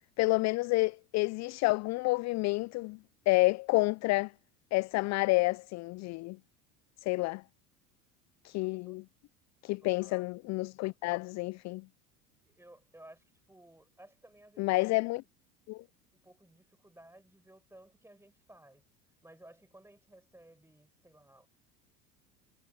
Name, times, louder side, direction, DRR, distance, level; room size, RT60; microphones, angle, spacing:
voice 1, 0.2-3.0 3.3-4.3 4.7-6.4 7.0-7.4 8.4-9.0 9.6-11.9 14.6-15.2 15.7-15.8, left 23 dB, 40° left, 0.4 m, -29 dB
voice 2, 8.5-9.0 9.8-10.8 11.1-11.3 12.4-15.0 16.1-18.8 19.2-21.5, right 1 dB, 5° right, 5.1 m, -58 dB
hypercardioid pair, 75°, 48 cm